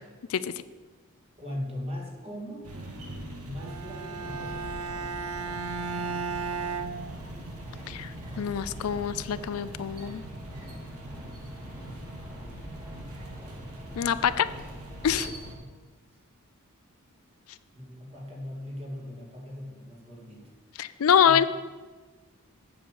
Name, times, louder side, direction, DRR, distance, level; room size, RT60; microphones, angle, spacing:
voice 1, 1.4-2.7 3.4-4.7 16.1-16.2 17.7-20.5 20.8-20.9 21.2-21.5, left 1 dB, 25° right, -2 dB, 2.5 m, -39 dB
sound 1, 2.6-15.5, right 1 dB, 90° right, 1.9 m, -42 dB
Bowed string instrument, 3.6-7.7, right 5 dB, 70° right, 0.7 m, -35 dB
sound 2, 4.2-15.5, equal, 10° right, 2.1 m, -46 dB
voice 2, 7.9-10.2 14.0-14.5 15.0-15.3 20.8-21.5, left 8 dB, 70° left, 14 dB, 0.4 m, -25 dB
7.8 x 6.9 x 8.3 m, 1.3 s
head